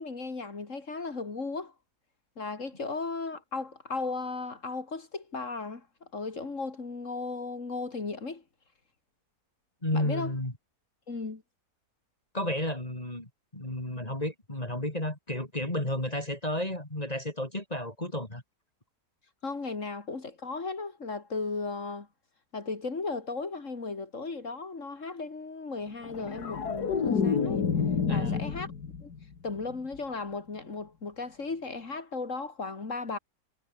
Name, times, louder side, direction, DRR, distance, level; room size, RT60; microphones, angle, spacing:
voice 1, 0.0-1.7 2.4-5.9 6.1-8.4 9.9-10.3 11.1-11.4 19.4-22.1 22.5-27.6 28.1-28.7 29.0-29.1 29.4-33.2, left 3 dB, 50° left, 3.0 m, -36 dB
voice 2, 9.8-10.5 12.3-18.4 28.1-28.4, left 1 dB, 25° left, 4.2 m, -32 dB
sound 1, 26.0-29.2 29.6-29.9, left 6 dB, 80° left, 2.6 m, -29 dB
omnidirectional pair, 1.7 m